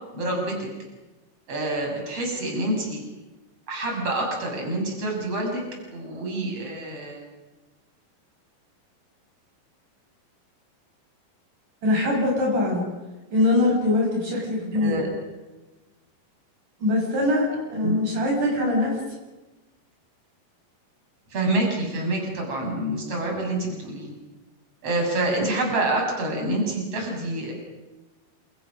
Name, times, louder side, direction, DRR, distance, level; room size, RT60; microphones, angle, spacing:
voice 1, 0.1-0.7 1.5-3.0 3.7-5.6 5.9-7.2 14.7-15.1 17.8-17.9 21.3-24.1 24.8-27.5, right 1 dB, 40° right, 1 dB, 8.0 m, -27 dB
voice 2, 11.8-12.8 13.3-15.0 16.8-19.0, left 2 dB, 60° right, -1 dB, 7.6 m, -22 dB
29.5 x 28.0 x 6.5 m, 1.1 s
omnidirectional pair, 4.0 m